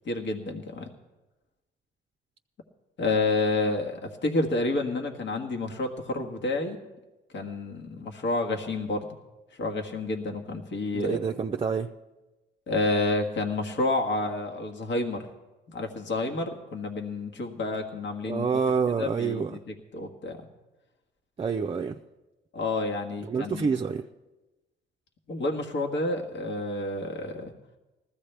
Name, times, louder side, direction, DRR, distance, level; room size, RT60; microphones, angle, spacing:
voice 1, 0.0-0.9 3.0-6.8 7.3-9.0 9.6-11.2 12.7-15.2 15.7-18.6 19.0-19.5 19.9-20.4 22.5-23.7 25.3-27.5, left 2 dB, 65° left, 2 dB, 1.6 m, -29 dB
voice 2, 10.9-11.9 18.3-19.6 21.4-22.0 23.2-24.1, right 5 dB, 30° right, 2 dB, 0.5 m, -27 dB
19.5 x 14.5 x 3.4 m, 1.1 s
cardioid pair, 90°, 20 cm